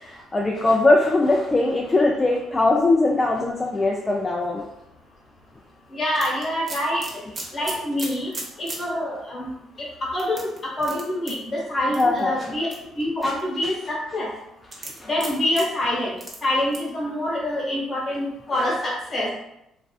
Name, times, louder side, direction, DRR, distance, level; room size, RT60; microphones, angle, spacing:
voice 1, 0.0-4.6 11.9-12.5 13.2-13.3 13.6-13.7 15.0-15.1, left 2 dB, 25° left, -1 dB, 0.3 m, -21 dB
voice 2, 5.9-7.0 7.5-8.3 8.6-9.5 9.8-12.7 13.0-14.3 15.1-19.4, left 1 dB, 45° left, -4 dB, 1.1 m, -26 dB
sound 1, 6.1-8.8 9.3-9.4 10.2-11.3 11.9-12.2 12.7-13.4 14.7-15.6 16.2-16.3 16.7-16.9, right 2 dB, 45° right, 0.7 m, -35 dB
2.4 x 2.4 x 2.3 m, 0.83 s
supercardioid pair, 65°, 0 cm